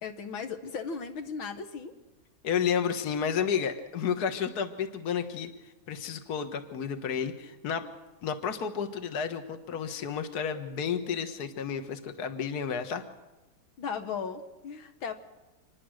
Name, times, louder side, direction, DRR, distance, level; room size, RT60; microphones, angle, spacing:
voice 1, 0.0-1.9 13.8-15.1, left 6 dB, 80° left, 7 dB, 2.3 m, -36 dB
voice 2, 2.4-5.5 5.9-7.8 8.2-13.0, left 7 dB, 55° left, 7 dB, 1.9 m, -31 dB
26.0 x 20.5 x 6.5 m, 1.1 s
omnidirectional pair, 2.2 m